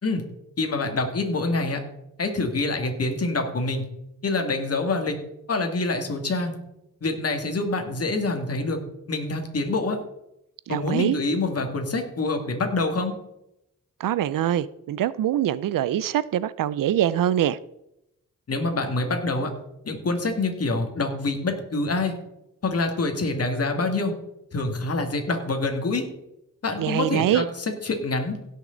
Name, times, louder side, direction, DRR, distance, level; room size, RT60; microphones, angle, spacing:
voice 1, 0.6-1.8 2.2-3.8 4.2-5.2 5.5-6.6 7.0-8.8 9.1-10.0 10.7-13.1 18.5-19.5 19.8-22.2 22.6-24.1 24.5-26.0 26.6-28.4, left 3 dB, 45° left, 2.2 m, -26 dB
voice 2, 10.7-11.2 14.0-17.6 26.8-27.4, right 11 dB, 80° right, 0.5 m, -24 dB
16.5 x 6.5 x 3.9 m
cardioid pair, 100°, 32 cm